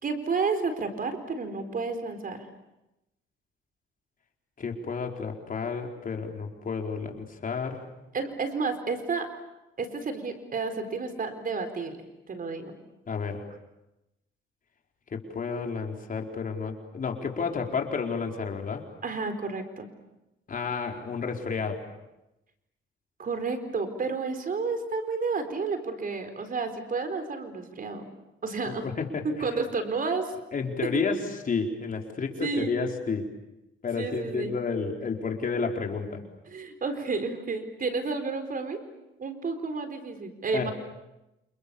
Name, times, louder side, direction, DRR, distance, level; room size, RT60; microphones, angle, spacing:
voice 1, 0.0-2.4 8.1-9.3 9.8-12.7 19.0-19.9 23.2-28.0 28.4-28.9 29.2-30.3 30.9-31.0 32.4-32.8 33.9-34.6 36.5-38.8 39.2-40.7, right 4 dB, 45° right, 7 dB, 4.4 m, -31 dB
voice 2, 4.6-7.8 13.1-13.4 15.1-18.8 20.5-21.8 28.7-29.2 30.5-31.2 31.5-33.2 33.8-36.2 40.5-40.7, left 5 dB, 45° left, 2 dB, 4.5 m, -31 dB
29.5 x 28.0 x 7.1 m, 0.94 s
cardioid pair, 90°, 20 cm